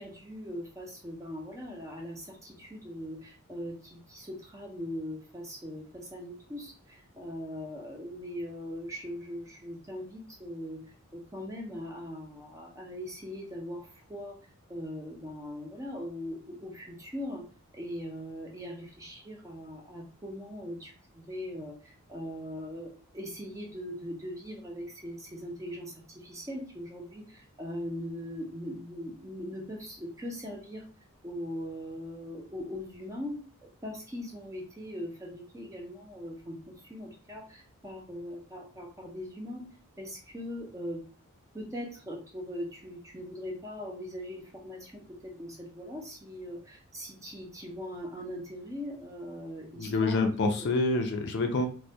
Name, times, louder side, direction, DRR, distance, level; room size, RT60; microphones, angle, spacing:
voice 1, 0.0-10.8 11.1-14.4 14.7-17.4 17.7-30.8 31.2-33.4 33.8-39.7 40.0-41.0 41.5-50.2 50.6-50.7, equal, 15° right, 0 dB, 0.5 m, -40 dB
voice 2, 49.7-51.7, left 3 dB, 50° left, 5 dB, 0.4 m, -27 dB
2.2 x 2.1 x 2.6 m, 0.38 s
head